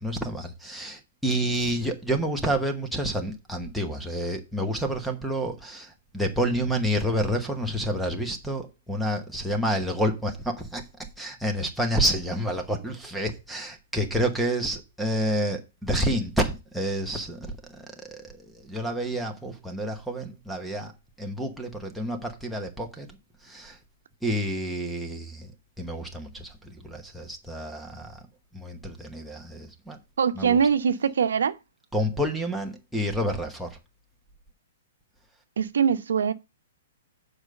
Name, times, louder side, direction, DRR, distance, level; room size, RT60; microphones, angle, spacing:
voice 1, 0.0-10.8 11.2-18.2 18.6-20.9 21.2-23.1 23.4-23.8 24.2-25.5 25.8-28.2 28.5-30.0 30.4-30.6 31.9-33.8, equal, ahead, 1.0 m, -29 dB
voice 2, 30.2-31.5 35.6-36.3, right 7 dB, 85° right, 0.9 m, -22 dB
7.3 x 4.9 x 6.6 m
hypercardioid pair, 170°, 0 cm